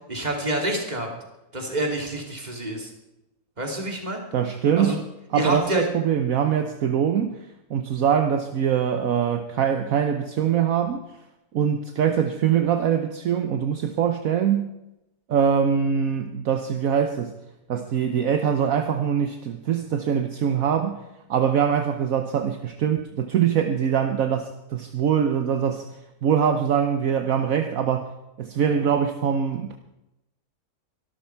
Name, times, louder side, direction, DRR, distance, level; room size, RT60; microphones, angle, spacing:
voice 1, 0.1-1.1 1.5-2.9 3.6-4.2 4.8-5.0 5.3-5.9, right 1 dB, 25° right, 2.8 m, -27 dB
voice 2, 4.3-11.0 11.5-14.7 15.3-17.4 17.7-21.0 21.3-25.9 26.2-29.8, right 8 dB, 65° right, 1.3 m, -23 dB
23.5 x 13.0 x 4.6 m
omnidirectional pair, 1.6 m